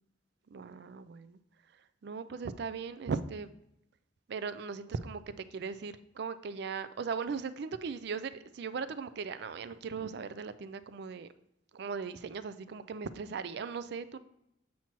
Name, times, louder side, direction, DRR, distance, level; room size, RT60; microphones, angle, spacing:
voice 1, 0.5-1.4 2.0-3.5 4.3-5.2 5.5-11.3 11.7-14.2, right 5 dB, 60° right, 13 dB, 0.4 m, -38 dB
7.3 x 5.6 x 3.0 m, 0.80 s
head